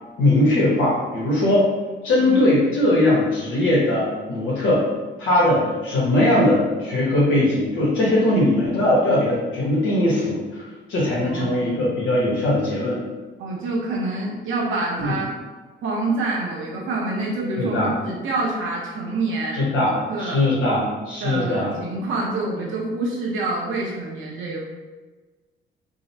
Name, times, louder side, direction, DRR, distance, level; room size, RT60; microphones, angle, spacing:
voice 1, 0.2-1.6 2.0-4.9 5.2-10.6 10.9-13.0 15.0-15.2 17.6-17.9 19.5-21.7, left 1 dB, 85° left, -8 dB, 1.1 m, -20 dB
voice 2, 2.2-2.5 11.2-11.7 13.4-15.3 15.8-20.4 21.2-24.6, right 2 dB, 80° right, -3 dB, 0.8 m, -27 dB
3.7 x 2.1 x 4.0 m, 1.3 s
cardioid pair, 90°, 20 cm